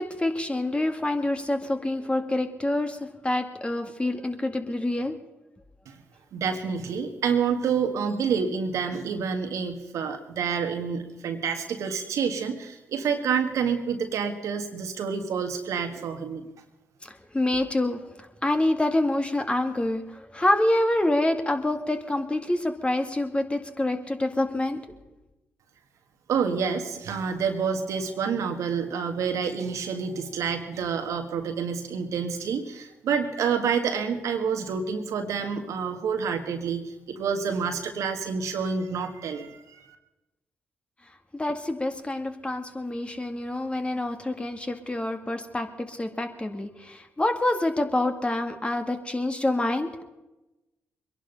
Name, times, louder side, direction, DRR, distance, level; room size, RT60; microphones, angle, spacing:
voice 1, 0.0-5.2 17.0-18.0 18.4-24.8 41.3-49.9, left 1 dB, 20° left, 6 dB, 2.0 m, -27 dB
voice 2, 6.3-16.5 26.3-39.9, right 6 dB, 75° right, 5 dB, 1.7 m, -28 dB
22.5 x 11.0 x 5.5 m, 1.0 s
supercardioid pair, 55°, 5 cm